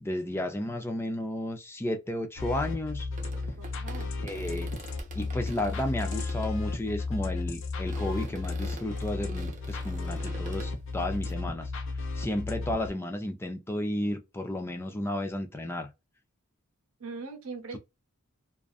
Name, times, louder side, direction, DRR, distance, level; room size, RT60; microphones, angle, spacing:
voice 1, 0.0-3.1 4.2-4.7 5.2-11.7 12.2-15.9, left 1 dB, 10° left, 0.4 m, -33 dB
sound 1, 2.4-12.9, left 3 dB, 60° left, 0.6 m, -34 dB
sound 2, 3.1-6.5 7.0-7.3 7.9-10.8 11.3-11.4, right 3 dB, 35° right, 0.6 m, -46 dB
voice 2, 3.6-4.3 17.0-17.8, right 4 dB, 75° right, 0.8 m, -41 dB
2.5 x 2.3 x 2.3 m
head